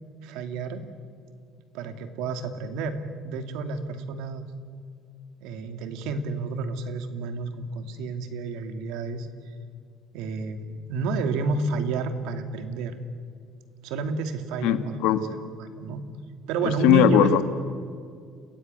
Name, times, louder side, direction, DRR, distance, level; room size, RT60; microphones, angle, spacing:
voice 1, 0.2-0.8 1.7-3.0 3.2-4.4 5.4-9.3 10.1-12.9 13.8-15.3 15.6-16.0 16.5-17.4, right 4 dB, 75° right, 8 dB, 2.4 m, -30 dB
voice 2, 14.6-15.2 16.6-17.4, left 9 dB, 80° left, 11 dB, 1.5 m, -19 dB
29.0 x 16.0 x 9.6 m, 2.2 s
cardioid pair, 175°, 0 cm